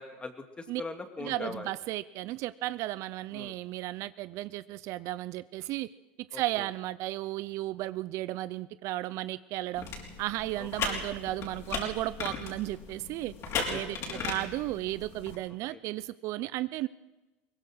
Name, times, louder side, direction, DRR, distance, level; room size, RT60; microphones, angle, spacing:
voice 1, 0.0-1.7 3.3-3.5 6.3-6.7 10.6-11.0 13.7-13.8 14.1-14.3 15.7-15.8, left 3 dB, 15° left, 7 dB, 2.3 m, -41 dB
voice 2, 1.2-5.9 6.3-9.9 10.2-13.3 13.7-16.9, right 16 dB, 55° right, 17 dB, 0.6 m, -34 dB
sound 1, 9.8-15.4, left 4 dB, 50° left, 5.6 m, -37 dB
22.0 x 19.5 x 6.3 m, 1.2 s
hypercardioid pair, 100°, 6 cm